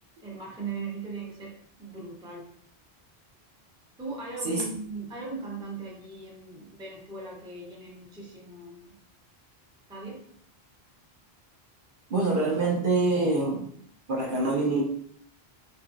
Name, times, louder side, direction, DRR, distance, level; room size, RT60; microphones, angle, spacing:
voice 1, 0.2-2.5 4.0-8.9 9.9-10.2, right 3 dB, 5° right, -3 dB, 0.5 m, -39 dB
voice 2, 12.1-13.7 14.1-14.8, right 3 dB, 60° right, -1 dB, 0.7 m, -25 dB
2.8 x 2.5 x 2.4 m, 0.63 s
omnidirectional pair, 1.1 m